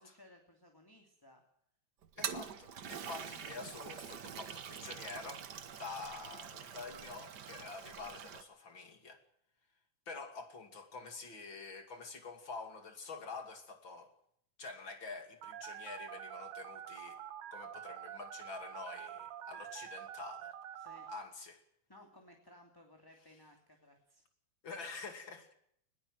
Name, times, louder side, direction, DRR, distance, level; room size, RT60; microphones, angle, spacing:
voice 1, 0.0-1.4 20.8-21.1 21.9-24.2, left 1 dB, 10° left, 3 dB, 2.4 m, -60 dB
Toilet flush, 2.0-8.4, right 8 dB, 55° right, 1.2 m, -45 dB
voice 2, 2.2-5.4 5.8-9.2 10.1-14.1 14.6-17.2 17.5-20.5 21.1-21.6 24.6-25.5, left 4 dB, 40° left, 7 dB, 3.1 m, -47 dB
Telephone, 15.4-21.2, right 10 dB, 80° right, 2.9 m, -47 dB
20.5 x 17.5 x 7.8 m, 0.69 s
omnidirectional pair, 3.4 m